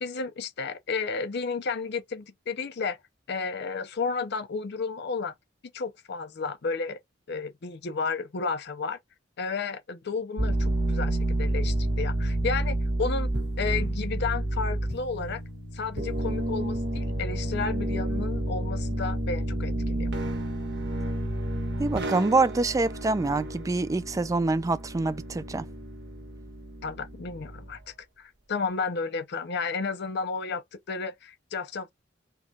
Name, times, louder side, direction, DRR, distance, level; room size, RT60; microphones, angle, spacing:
voice 1, 0.0-3.0 3.3-5.3 5.7-7.0 7.3-9.0 9.4-13.3 13.6-15.4 15.7-20.1 26.8-27.8 28.2-31.9, left 4 dB, 60° left, 0.6 m, -32 dB
sound 1, 10.4-27.8, right 1 dB, 60° right, 1.4 m, -30 dB
voice 2, 21.8-25.6, right 3 dB, 15° right, 0.3 m, -25 dB
4.6 x 2.3 x 2.8 m
head